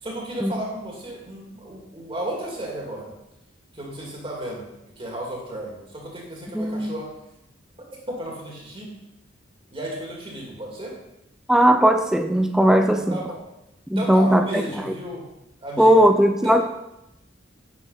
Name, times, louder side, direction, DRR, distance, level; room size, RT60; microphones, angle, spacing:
voice 1, 0.0-3.1 3.7-4.7 5.0-7.1 8.1-8.9 9.7-10.9 12.6-13.4 14.0-15.2 15.6-16.1 16.4-16.6, right 1 dB, 30° right, -1 dB, 2.4 m, -34 dB
voice 2, 6.5-6.9 11.5-13.2 13.9-14.4 15.8-16.6, equal, 5° right, 6 dB, 0.5 m, -17 dB
10.0 x 6.7 x 5.6 m, 0.87 s
head